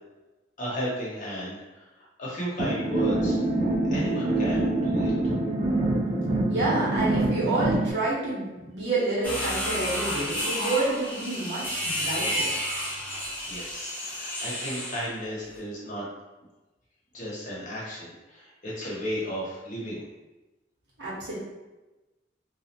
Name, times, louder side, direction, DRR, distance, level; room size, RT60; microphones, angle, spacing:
voice 1, 0.6-3.4 3.9-5.1 13.5-16.1 17.1-20.0, equal, 45° left, -6 dB, 0.8 m, -34 dB
sound 1, 2.6-7.9, right 2 dB, 40° right, 0.4 m, -25 dB
voice 2, 6.5-12.5 21.0-21.3, right 2 dB, 75° right, -8 dB, 1.0 m, -28 dB
sound 2, 9.2-15.1, equal, 10° left, 0.7 m, -31 dB
2.4 x 2.1 x 2.8 m, 1.1 s
head